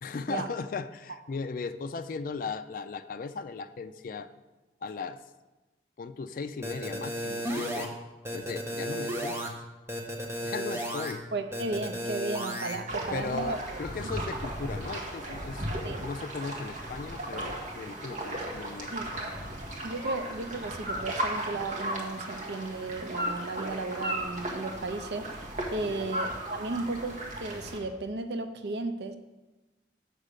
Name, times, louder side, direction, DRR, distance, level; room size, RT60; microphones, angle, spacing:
voice 1, 0.0-4.3 4.8-5.2 6.0-7.9 8.3-9.5 10.4-11.2 13.1-19.2 25.9-26.1, left 4 dB, 50° left, 10 dB, 0.4 m, -37 dB
sound 1, 6.6-7.9 8.3-9.5 9.9-11.1 11.5-12.8, equal, 15° right, 0.8 m, -33 dB
voice 2, 11.3-13.8 15.8-16.0 18.9-19.1 19.8-25.3 25.7-29.2, right 3 dB, 70° right, 9 dB, 0.5 m, -34 dB
sound 2, 12.9-27.8, right 1 dB, 45° right, 1.2 m, -36 dB
6.4 x 4.9 x 6.6 m, 1.1 s
head